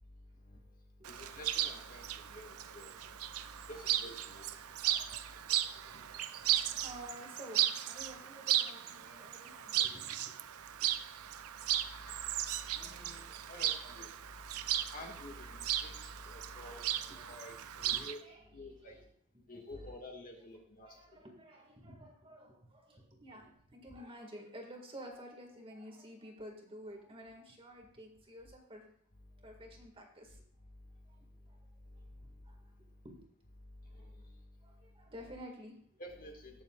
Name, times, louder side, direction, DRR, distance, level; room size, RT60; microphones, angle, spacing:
Chirp tweet, 1.0-18.1, right 12 dB, 85° right, 0.6 m, -36 dB
voice 1, 1.1-3.1 3.5-4.5 12.1-12.2 12.7-14.1 14.9-18.2 18.5-18.9 19.5-21.0 33.9-34.4 36.0-36.6, left 1 dB, 40° left, 1 dB, 1.8 m, -50 dB
voice 2, 4.4-10.5 10.8-10.9 12.2-13.0 13.8-14.1 17.1-17.4 17.8-19.0 19.3-19.4 20.8-28.8 29.4-30.4 31.1-31.6 32.0-32.1 32.5-32.7 33.0-33.2 34.0-34.1 34.6-36.0, equal, 25° right, 1 dB, 1.9 m, -52 dB
20.0 x 7.2 x 2.4 m, 0.67 s
head